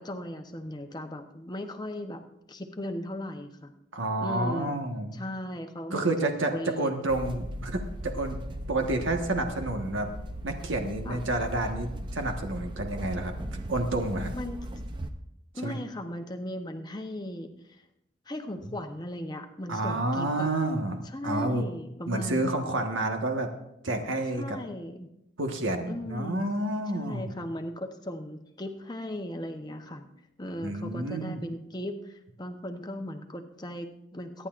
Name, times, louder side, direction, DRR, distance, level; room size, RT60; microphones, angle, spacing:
voice 1, 0.0-2.2 2.5-3.7 4.2-6.9 11.0-11.2 14.3-14.6 15.5-17.8 18.3-20.6 21.1-22.5 24.3-25.1 25.9-26.5 26.9-30.1 30.4-34.5, left 1 dB, 20° left, 5 dB, 0.8 m, -37 dB
voice 2, 3.9-5.2 5.9-8.4 8.7-10.1 10.4-13.3 13.7-14.3 15.6-15.7 19.7-21.6 22.1-23.5 23.8-24.6 25.4-27.3 30.6-31.5, right 2 dB, 80° right, 4 dB, 1.4 m, -29 dB
sound 1, 7.1-15.1, equal, 25° right, 0.6 m, -38 dB
23.5 x 10.0 x 2.5 m, 0.83 s
head